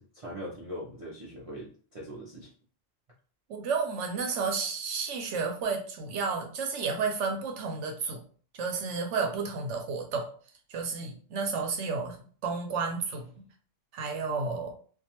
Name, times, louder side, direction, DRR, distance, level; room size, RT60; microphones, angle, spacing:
voice 1, 0.0-2.5, equal, 45° right, -6 dB, 0.4 m, -41 dB
voice 2, 3.5-8.2 8.5-10.3 10.7-12.2 12.4-13.2 13.9-14.7, right 5 dB, 70° right, 3 dB, 0.9 m, -31 dB
2.4 x 2.3 x 2.8 m, 0.43 s
omnidirectional pair, 1.3 m